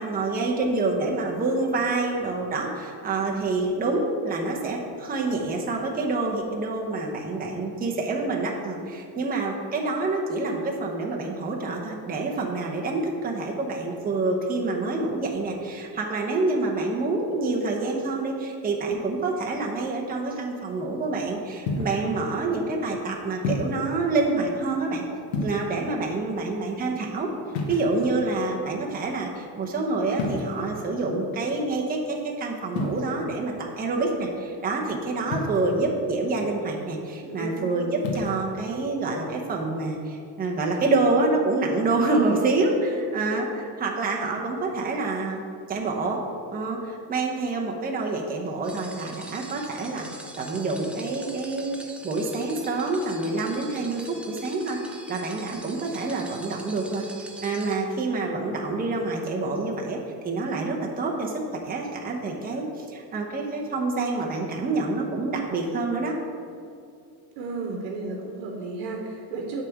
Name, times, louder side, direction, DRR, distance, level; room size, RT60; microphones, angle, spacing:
voice 1, 0.0-25.0 25.4-27.3 27.7-45.4 45.7-46.2 46.5-50.1 50.4-54.8 55.1-57.1 57.4-60.0 60.2-66.1, right 3 dB, 20° right, -1 dB, 0.9 m, -27 dB
sound 1, 21.7-22.1 23.4-23.9 25.3-25.9 27.5-28.3 30.1-30.7 32.7-33.0 35.3-35.8 38.0-38.4, left 2 dB, 90° left, 1.3 m, -30 dB
voice 2, 37.2-38.2 67.4-69.6, right 3 dB, 85° right, 1 dB, 1.1 m, -34 dB
sound 2, 48.6-57.7, right 2 dB, 5° right, 0.4 m, -43 dB
7.4 x 3.7 x 6.4 m, 2.4 s
cardioid pair, 120°, 47 cm